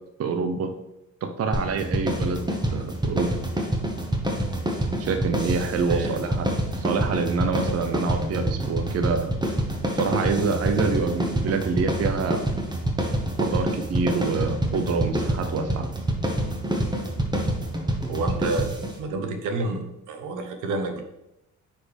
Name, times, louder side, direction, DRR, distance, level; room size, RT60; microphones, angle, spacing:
voice 1, 0.2-0.7 1.2-2.4 2.7-3.3 5.0-9.4 10.0-12.4 13.4-15.9, right 4 dB, 55° right, 6 dB, 0.8 m, -26 dB
sound 1, 1.5-19.0, right 1 dB, 15° right, 1.4 m, -27 dB
voice 2, 5.9-6.2 18.1-18.7 19.0-21.0, right 3 dB, 90° right, 5 dB, 1.1 m, -29 dB
9.4 x 4.4 x 3.5 m, 0.87 s
cardioid pair, 90°, 30 cm